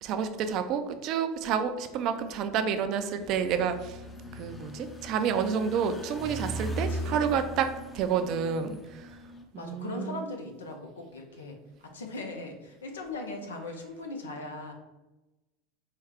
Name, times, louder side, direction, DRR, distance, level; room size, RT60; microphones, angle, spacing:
voice 1, 0.0-4.0 4.3-7.7 7.9-9.1 9.5-10.2, right 7 dB, 55° right, 9 dB, 0.4 m, -29 dB
sound 1, 3.2-9.4, right 1 dB, 15° left, 0.6 m, -39 dB
voice 2, 6.7-7.5 9.5-11.6 11.8-14.7, left 2 dB, 85° left, 3 dB, 0.7 m, -39 dB
4.6 x 2.3 x 3.5 m, 1.0 s
hypercardioid pair, 85°, 0 cm